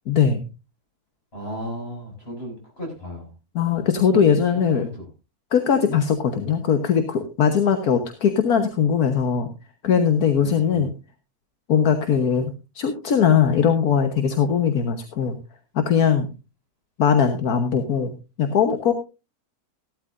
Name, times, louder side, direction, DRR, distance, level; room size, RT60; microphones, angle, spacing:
voice 1, 0.1-0.5 3.5-4.9 5.5-9.5 9.8-10.9 11.7-15.4 15.7-16.3 17.0-18.9, left 7 dB, 75° left, 7 dB, 1.6 m, -20 dB
voice 2, 1.3-3.3 4.7-4.9 10.4-10.8, equal, 40° left, 0 dB, 6.8 m, -35 dB
16.0 x 12.0 x 2.6 m, 0.29 s
omnidirectional pair, 1.6 m